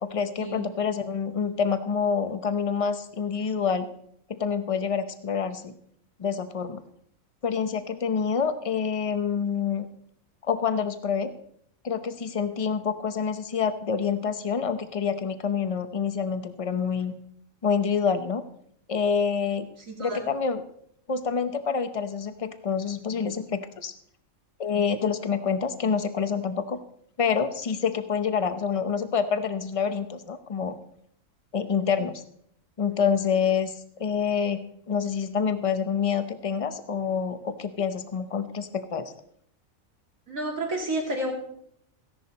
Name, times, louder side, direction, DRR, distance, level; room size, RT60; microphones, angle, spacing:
voice 1, 0.0-3.9 4.3-5.7 6.2-6.8 7.4-9.9 10.5-11.3 11.8-17.1 17.6-18.4 18.9-19.7 20.0-20.6 21.1-23.9 24.6-26.8 27.2-30.8 31.5-32.2 32.8-33.7 34.0-34.6 34.9-39.1, left 6 dB, 30° left, 10 dB, 0.7 m, -27 dB
voice 2, 19.8-20.2 40.3-41.3, right 1 dB, 75° right, 1 dB, 2.9 m, -30 dB
15.0 x 11.0 x 4.2 m, 0.68 s
omnidirectional pair, 1.4 m